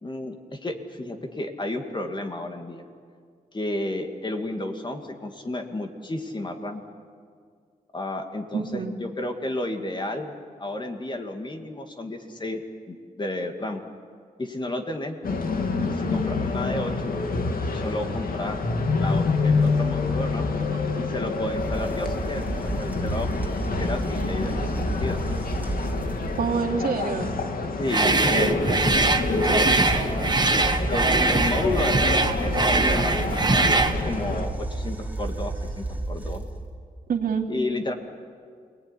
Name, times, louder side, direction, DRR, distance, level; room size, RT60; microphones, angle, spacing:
voice 1, 0.0-2.8 3.5-6.8 7.9-12.6 12.9-13.8 14.4-15.2 15.8-17.1 17.7-18.6 19.0-20.5 21.0-25.2 27.8-28.6 30.9-36.5 37.5-37.9, left 1 dB, 30° left, 4 dB, 2.3 m, -32 dB
voice 2, 8.5-9.0 26.4-27.3 28.0-28.8 29.4-29.7 37.1-37.4, right 6 dB, 85° right, 0 dB, 2.7 m, -28 dB
sound 1, 15.2-34.5, left 3 dB, 75° left, 2.2 m, -27 dB
sound 2, 21.5-26.6 28.7-36.8, right 2 dB, 10° right, 2.7 m, -31 dB
sound 3, 27.9-34.0, right 3 dB, 30° right, 1.4 m, -22 dB
28.5 x 19.5 x 10.0 m, 2.1 s
wide cardioid pair, 100°, 15 cm